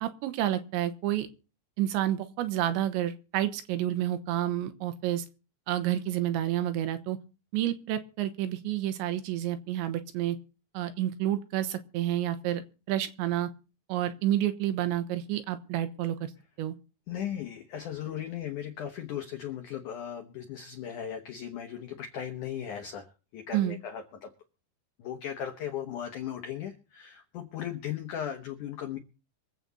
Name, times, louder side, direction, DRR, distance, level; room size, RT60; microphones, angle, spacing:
voice 1, 0.0-1.3 1.8-5.3 5.7-7.2 7.5-10.4 10.8-12.6 12.9-13.5 13.9-16.3 16.6-16.8 23.5-23.8, right 12 dB, 85° right, 10 dB, 3.3 m, -29 dB
voice 2, 17.1-24.3 25.0-29.0, left 9 dB, 90° left, 5 dB, 1.7 m, -37 dB
24.0 x 8.2 x 4.1 m, 0.35 s
omnidirectional pair, 5.2 m